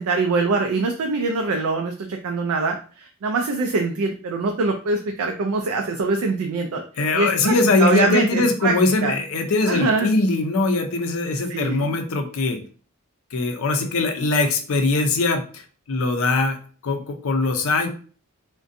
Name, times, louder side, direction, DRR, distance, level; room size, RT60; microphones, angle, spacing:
voice 1, 0.0-6.8 7.1-8.7 9.0-9.1 9.7-10.1 11.5-11.9, right 3 dB, 75° right, 3 dB, 0.4 m, -23 dB
voice 2, 7.0-12.6 13.3-16.6 16.8-17.9, left 3 dB, 65° left, 5 dB, 0.5 m, -21 dB
2.5 x 2.2 x 2.5 m, 0.40 s
head